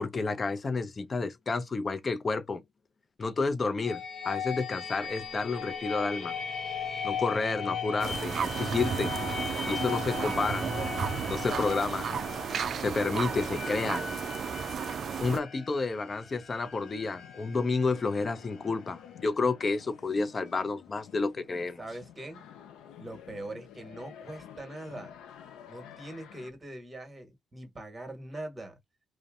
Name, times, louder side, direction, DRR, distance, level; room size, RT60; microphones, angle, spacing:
voice 1, 0.0-2.6 3.2-6.3 7.0-9.3 9.7-10.7 11.3-12.2 12.8-14.1 15.2-21.8, left 4 dB, 35° left, 0.5 m, -30 dB
sound 1, 3.8-19.5, left 6 dB, 60° left, 0.9 m, -38 dB
sound 2, 8.0-15.4, right 7 dB, 55° right, 0.3 m, -33 dB
sound 3, 16.8-26.5, left 9 dB, 90° left, 0.4 m, -51 dB
voice 2, 21.5-22.5 23.0-25.1 25.7-28.8, right 1 dB, 20° right, 1.3 m, -42 dB
2.5 x 2.1 x 2.3 m
cardioid pair, 90°, 0 cm